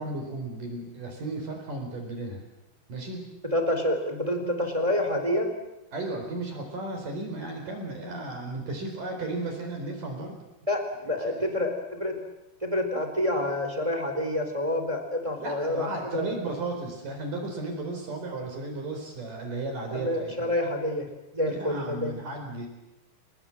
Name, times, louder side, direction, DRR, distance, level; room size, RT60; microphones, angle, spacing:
voice 1, 0.0-2.4 2.9-3.2 5.9-10.4 11.3-11.4 15.4-20.5 21.5-22.7, right 2 dB, 45° right, 3 dB, 5.4 m, -34 dB
voice 2, 3.4-5.5 10.7-12.2 12.6-16.3 19.9-22.1, left 1 dB, 10° right, 5 dB, 3.1 m, -28 dB
28.5 x 20.5 x 7.7 m, 0.97 s
omnidirectional pair, 5.5 m